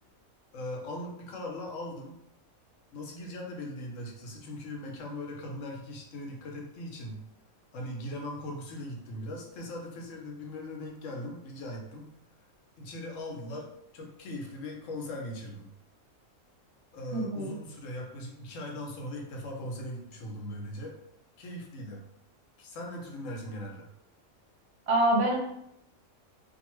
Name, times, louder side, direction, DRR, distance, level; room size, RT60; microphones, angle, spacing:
voice 1, 0.5-2.2 2.9-7.2 7.7-12.2 12.8-15.7 16.9-21.0 21.4-22.0 22.6-23.9, left 1 dB, 70° left, 1 dB, 0.9 m, -39 dB
voice 2, 17.1-17.5 24.9-25.3, right 1 dB, 55° right, -2 dB, 0.8 m, -25 dB
2.5 x 2.3 x 3.0 m, 0.78 s
omnidirectional pair, 1.5 m